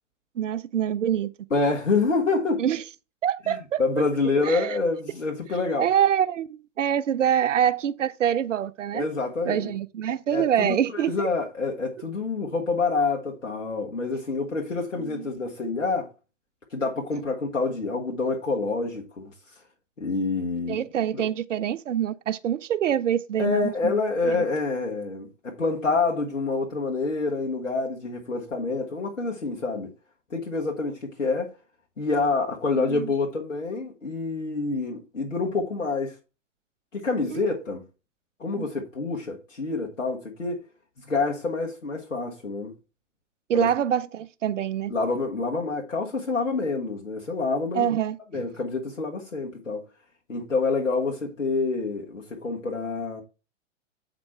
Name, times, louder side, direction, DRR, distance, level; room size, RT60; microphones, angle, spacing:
voice 1, 0.4-1.3 2.6-2.8 3.2-3.8 4.4-4.8 5.8-6.5 6.8-9.1 9.5-11.3 15.0-15.2 20.7-23.9 24.3-24.4 32.8-33.1 37.3-37.6 38.5-38.7 43.5-44.9 47.7-48.2, right 9 dB, 80° right, 0.5 m, -25 dB
voice 2, 1.5-2.6 3.5-5.9 8.9-9.7 10.3-16.1 16.7-19.3 20.0-20.8 21.1-21.2 23.4-29.9 30.3-31.5 32.0-36.2 36.9-37.8 38.4-40.6 41.0-42.7 43.5-43.7 44.9-47.9 48.3-49.9 50.3-53.2, left 3 dB, 90° left, 1.5 m, -27 dB
8.2 x 5.2 x 4.4 m
figure-of-eight pair, 110°, 37 cm